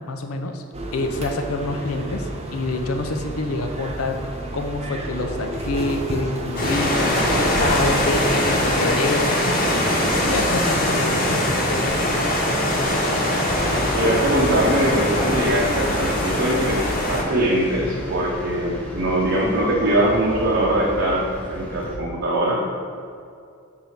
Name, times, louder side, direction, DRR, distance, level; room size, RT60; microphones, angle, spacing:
voice 1, 0.1-0.6 0.9-9.4 9.9-12.3, left 2 dB, 90° left, 5 dB, 0.6 m, -27 dB
sound 1, 0.7-8.9, right 1 dB, 30° right, 0.6 m, -31 dB
sound 2, 6.6-17.2, left 1 dB, 40° left, 1.0 m, -22 dB
sound 3, 13.5-22.0, equal, 5° left, 0.8 m, -32 dB
voice 2, 13.9-16.8 17.1-22.6, right 1 dB, 60° right, -4 dB, 0.8 m, -22 dB
4.7 x 4.0 x 5.7 m, 2.4 s
head